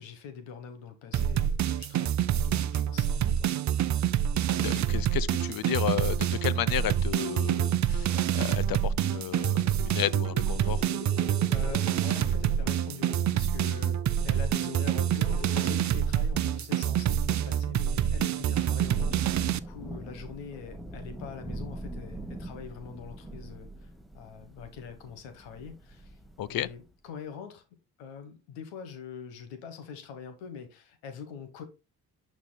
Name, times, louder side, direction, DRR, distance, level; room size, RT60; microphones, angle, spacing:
voice 1, 0.0-4.2 8.1-8.3 11.5-14.0 14.2-26.2 26.5-27.6 28.0-31.6, left 6 dB, 85° left, 1.3 m, -44 dB
sound 1, 1.1-19.6, right 10 dB, 45° right, 0.6 m, -27 dB
voice 2, 4.5-10.8 26.4-26.7, left 11 dB, 55° left, 0.7 m, -33 dB
sound 2, 9.8-15.8, left 6 dB, 25° left, 1.0 m, -46 dB
Thunder / Rain, 18.3-26.9, right 1 dB, ahead, 1.0 m, -43 dB
11.0 x 4.1 x 2.2 m
hypercardioid pair, 50°, 42 cm